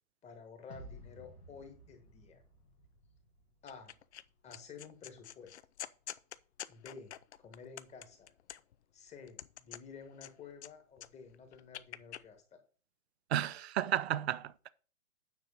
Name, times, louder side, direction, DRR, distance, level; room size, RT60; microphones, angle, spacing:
voice 1, 0.2-2.4 3.6-3.9 4.4-5.6 6.7-7.1 7.4-8.3 8.9-12.4, left 5 dB, 15° left, 1.6 m, -52 dB
sound 1, 0.7-4.0, equal, 85° left, 2.3 m, -55 dB
sound 2, 3.7-4.2 4.5-8.8 9.3-10.7 11.0-12.2, left 11 dB, 50° left, 0.6 m, -47 dB
voice 2, 13.3-14.7, right 11 dB, 45° right, 0.7 m, -33 dB
9.6 x 6.2 x 4.1 m
figure-of-eight pair, 120°, 44 cm